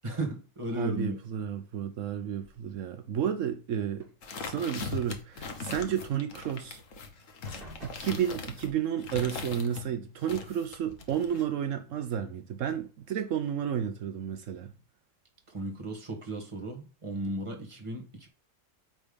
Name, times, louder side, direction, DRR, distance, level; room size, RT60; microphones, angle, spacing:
voice 1, 0.0-1.2 15.5-18.3, right 1 dB, 25° right, 1.7 m, -35 dB
voice 2, 0.7-4.1 4.4-6.8 7.8-14.7, right 9 dB, 75° right, 1.1 m, -32 dB
sound 1, 2.4-3.0 3.9-4.7 6.5-6.6 6.9-7.1 7.4-8.9 10.0-10.1 10.7-11.0, equal, 45° right, 2.3 m, -52 dB
sound 2, 4.2-9.8 10.2-11.5, left 4 dB, 75° left, 1.5 m, -40 dB
8.9 x 3.6 x 5.2 m
omnidirectional pair, 1.3 m